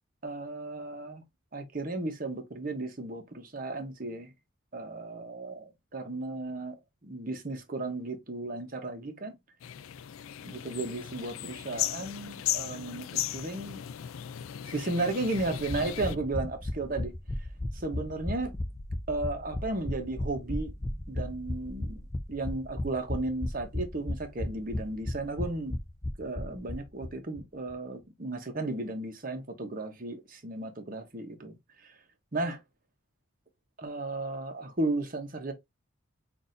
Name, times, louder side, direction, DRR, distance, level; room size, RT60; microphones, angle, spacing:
voice 1, 0.2-1.2 1.5-4.3 4.7-6.7 7.0-9.3 10.4-13.8 14.7-17.1 17.7-18.5 19.1-20.7 21.1-22.0 22.3-25.7 26.2-31.6 31.8-31.9 32.3-32.6 33.8-35.5, right 2 dB, 45° right, 1.0 m, -34 dB
sound 1, 9.6-16.1, left 12 dB, 85° left, 0.4 m, -36 dB
sound 2, 15.4-27.1 27.4-27.5 27.7-27.8, left 1 dB, 15° left, 0.4 m, -35 dB
6.1 x 2.6 x 2.5 m
head